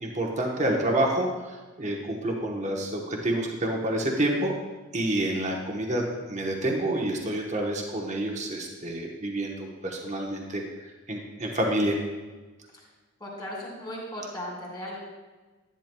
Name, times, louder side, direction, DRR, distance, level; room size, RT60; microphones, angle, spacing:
voice 1, 0.0-4.5 4.9-12.0, right 1 dB, 35° right, 0 dB, 1.0 m, -28 dB
voice 2, 13.2-15.0, equal, 20° left, -3 dB, 2.5 m, -37 dB
10.5 x 9.8 x 2.2 m, 1.3 s
head